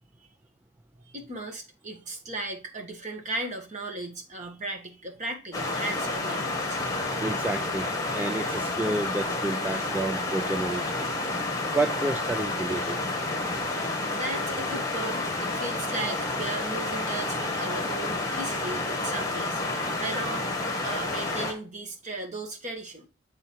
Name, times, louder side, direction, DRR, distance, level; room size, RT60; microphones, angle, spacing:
voice 1, 1.1-7.2 14.1-20.5 20.8-23.1, right 2 dB, 35° right, 1.5 m, -36 dB
sound 1, 5.5-21.5, left 2 dB, 15° left, 1.4 m, -30 dB
voice 2, 7.2-7.9 8.1-11.2 11.7-13.0, right 2 dB, 10° right, 0.3 m, -30 dB
7.6 x 4.0 x 4.4 m
head